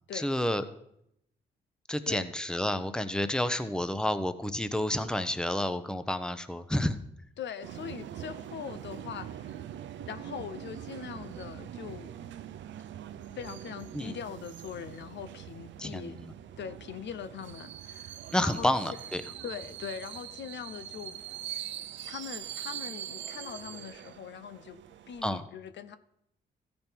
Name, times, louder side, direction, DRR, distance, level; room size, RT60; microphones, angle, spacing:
voice 1, 0.1-0.6 1.9-7.0 13.9-14.2 15.8-16.3 18.3-19.2 25.2-25.5, left 1 dB, 5° left, 11 dB, 0.8 m, -30 dB
voice 2, 7.4-9.6 10.1-12.1 13.3-16.2 16.6-18.7 19.4-21.2 22.1-24.8 25.1-26.0, left 8 dB, 65° left, 11 dB, 0.6 m, -41 dB
sound 1, 7.6-25.2, right 10 dB, 70° right, 0.5 m, -43 dB
14.5 x 5.3 x 4.5 m, 0.76 s
supercardioid pair, 55°, 20 cm